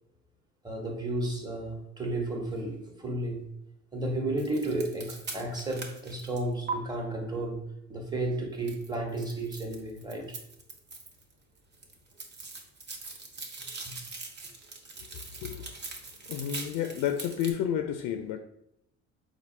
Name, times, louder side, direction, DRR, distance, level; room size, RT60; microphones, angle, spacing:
voice 1, 0.6-3.4 3.9-7.6 7.9-10.4, right 2 dB, 10° right, 0 dB, 1.1 m, -33 dB
sound 1, 4.4-6.7 8.7-11.3 11.6-17.5, right 4 dB, 30° right, 0.9 m, -42 dB
voice 2, 16.3-18.4, left 9 dB, 70° left, 6 dB, 0.5 m, -30 dB
4.2 x 2.5 x 4.4 m, 0.77 s
supercardioid pair, 95°, 33 cm